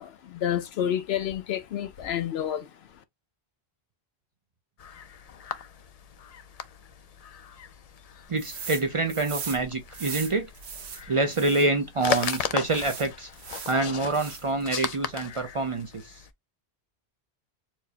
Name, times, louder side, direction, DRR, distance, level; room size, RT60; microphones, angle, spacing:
voice 1, 0.0-2.7, left 10 dB, 75° left, 0.8 m, -29 dB
sound 1, 4.8-16.3, left 7 dB, 55° left, 0.4 m, -37 dB
voice 2, 8.3-10.5 11.1-13.3 13.7-16.1, right 3 dB, 45° right, 0.4 m, -26 dB
sound 2, 8.4-8.8 9.1-11.7 12.1-13.8 14.1-14.6, right 6 dB, 75° right, 1.1 m, -39 dB
4.5 x 2.1 x 2.7 m
omnidirectional pair, 1.1 m